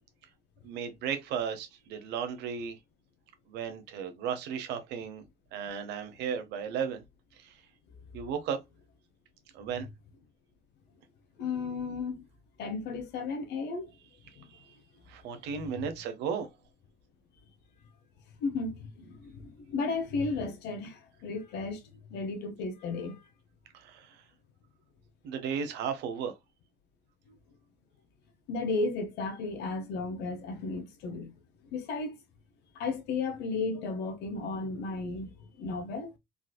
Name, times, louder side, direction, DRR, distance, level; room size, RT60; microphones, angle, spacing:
voice 1, 0.6-2.8 3.5-5.2 5.5-7.0 7.4-7.5 8.1-8.6 9.5-9.9 15.1-16.5 23.7-24.1 25.2-26.3, right 7 dB, 90° right, 0.8 m, -35 dB
voice 2, 11.4-12.3 12.6-13.9 14.3-14.5 15.5-15.9 18.4-21.8 22.1-23.2 28.5-31.3 31.7-32.2 32.7-36.1, left 3 dB, 85° left, 1.0 m, -34 dB
3.8 x 2.6 x 2.2 m
cardioid pair, 110°, 17 cm